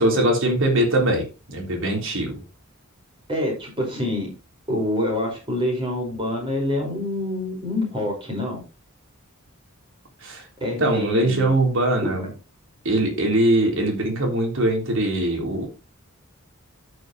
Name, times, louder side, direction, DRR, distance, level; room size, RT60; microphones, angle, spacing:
voice 1, 0.0-2.4 10.2-10.5 10.8-12.3 12.8-15.7, right 1 dB, 65° right, 3.7 m, -21 dB
voice 2, 3.3-4.3 4.7-8.6 10.6-11.5 12.0-12.1, left 1 dB, 25° right, 5.2 m, -26 dB
13.5 x 6.7 x 3.1 m
head